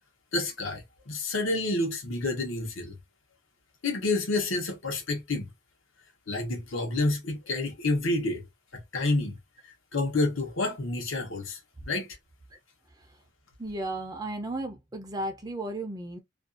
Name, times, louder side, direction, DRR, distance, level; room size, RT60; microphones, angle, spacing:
voice 1, 0.3-3.0 3.8-5.5 6.3-8.4 8.7-9.4 9.9-11.6 11.9-12.2, left 2 dB, 80° left, 0.9 m, -29 dB
voice 2, 13.6-16.2, right 1 dB, 20° right, 0.5 m, -34 dB
2.5 x 2.3 x 2.4 m
head